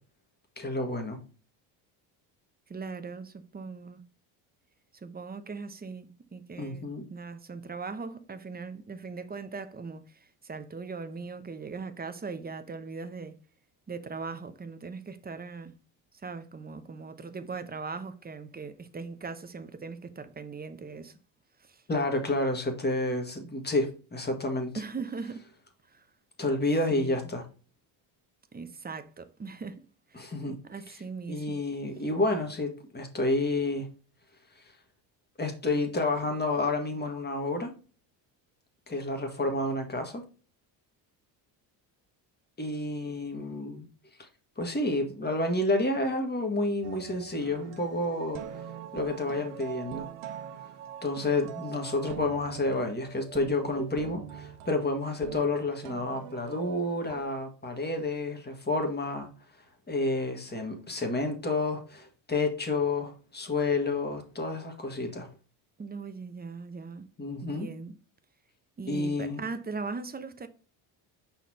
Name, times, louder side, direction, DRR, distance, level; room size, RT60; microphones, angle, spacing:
voice 1, 0.6-1.2 6.6-7.0 21.9-24.7 26.4-27.5 30.1-30.6 30.9-31.0 31.3-33.9 35.4-37.7 38.9-40.2 42.6-43.9 44.2-44.3 44.6-48.4 48.9-50.1 51.0-59.3 59.9-65.3 67.2-67.7 68.9-69.4, left 2 dB, 20° left, 1.9 m, -30 dB
voice 2, 2.7-4.0 4.9-13.4 13.9-15.7 16.2-21.2 21.6-21.8 24.8-25.4 25.9-26.1 26.9-27.2 28.5-29.8 30.1-30.3 30.6-31.6 65.8-67.1 67.4-67.9 68.8-70.5, right 4 dB, 20° right, 0.8 m, -39 dB
sound 1, 46.8-57.2, right 9 dB, 85° right, 1.0 m, -43 dB
5.6 x 4.4 x 4.1 m
cardioid pair, 95°, 48 cm